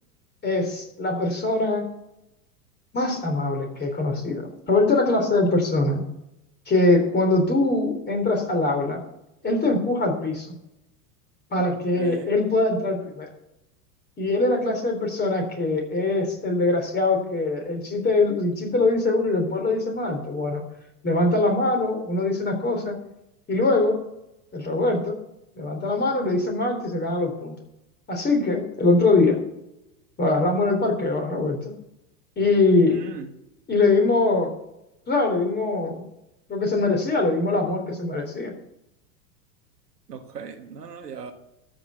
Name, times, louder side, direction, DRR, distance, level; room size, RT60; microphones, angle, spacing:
voice 1, 0.4-1.9 2.9-6.0 6.7-9.0 9.4-10.5 11.5-13.3 14.2-20.6 21.0-23.0 23.5-24.0 24.5-25.2 25.6-27.6 28.1-29.4 30.2-31.7 32.4-33.0 33.7-34.5 35.1-36.0 36.5-38.5, left 2 dB, 20° left, 3.7 m, -22 dB
voice 2, 12.0-12.4 32.9-33.3 40.1-41.3, right 6 dB, 85° right, 1.6 m, -37 dB
13.0 x 6.2 x 7.0 m
hypercardioid pair, 95°, 47 cm